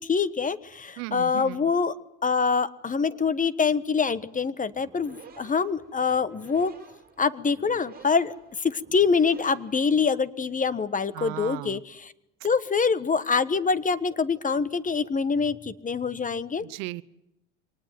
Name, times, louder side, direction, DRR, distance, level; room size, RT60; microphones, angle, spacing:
voice 1, 0.0-1.9 2.2-6.7 7.2-12.1 12.4-16.7, left 5 dB, 20° left, 17 dB, 1.3 m, -25 dB
voice 2, 1.0-1.7 11.1-11.8 16.6-17.0, right 20 dB, 65° right, 18 dB, 1.0 m, -36 dB
sound 1, 4.6-10.4, right 6 dB, 25° right, 4.8 m, -51 dB
25.0 x 19.5 x 9.4 m, 0.87 s
supercardioid pair, 95°, 36 cm